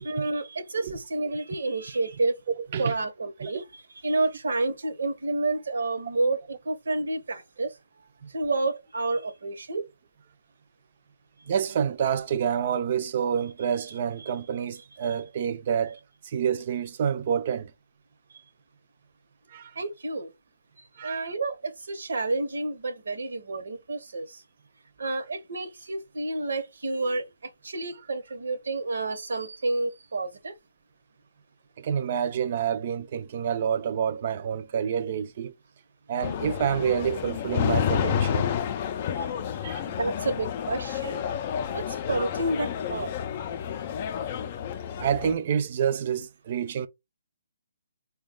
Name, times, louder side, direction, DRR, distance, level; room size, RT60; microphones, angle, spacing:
voice 1, 0.0-2.4 2.8-7.8 8.3-9.8 14.2-14.3 18.3-18.4 19.8-20.3 21.0-24.4 25.0-30.6 39.1-39.3 39.9-41.2 41.7-43.1, right 2 dB, 75° right, 0.8 m, -30 dB
voice 2, 11.5-17.7 19.5-19.7 21.0-21.2 31.8-35.5 36.1-38.5 39.6-39.8 45.0-46.9, right 8 dB, 45° right, 0.4 m, -28 dB
sound 1, 36.2-45.3, left 8 dB, 35° left, 0.4 m, -30 dB
4.1 x 2.2 x 3.6 m
hypercardioid pair, 150°, 0 cm